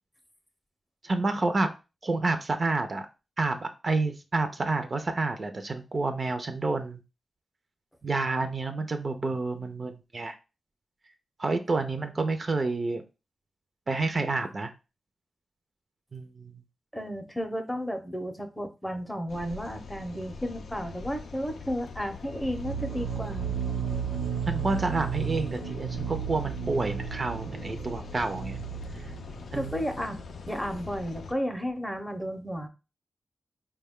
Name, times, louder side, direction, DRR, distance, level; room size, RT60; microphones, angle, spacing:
voice 1, 1.0-1.7 2.0-3.1 3.4-7.0 8.0-10.3 11.4-13.0 13.9-14.7 16.1-16.5 24.5-28.6 29.0-29.1 29.5-29.8, right 3 dB, 40° right, 7 dB, 0.5 m, -29 dB
voice 2, 16.9-23.6 29.5-30.2 30.5-32.7, equal, 10° left, 6 dB, 0.6 m, -33 dB
sound 1, 19.3-31.3, left 5 dB, 80° left, 0.4 m, -43 dB
sound 2, 22.4-30.1, right 8 dB, 80° right, 0.7 m, -34 dB
4.6 x 2.2 x 3.5 m, 0.29 s
cardioid pair, 85°, 0 cm